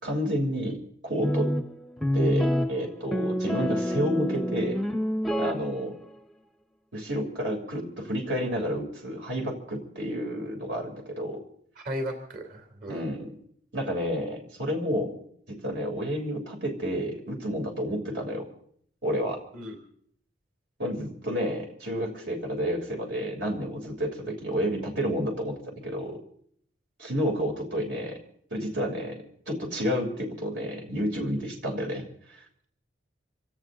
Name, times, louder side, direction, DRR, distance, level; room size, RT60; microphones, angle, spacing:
voice 1, 0.0-1.5 2.1-4.8 5.4-6.0 6.9-11.4 12.9-13.3 13.7-15.1 15.5-18.5 19.0-19.4 20.8-26.2 27.0-28.2 28.5-32.4, equal, 75° right, 1 dB, 3.4 m, -30 dB
sound 1, 1.2-6.0, equal, ahead, 0.6 m, -27 dB
voice 2, 11.8-13.0 19.5-19.8, equal, 55° right, 4 dB, 3.1 m, -35 dB
27.0 x 16.5 x 2.7 m, 0.64 s
head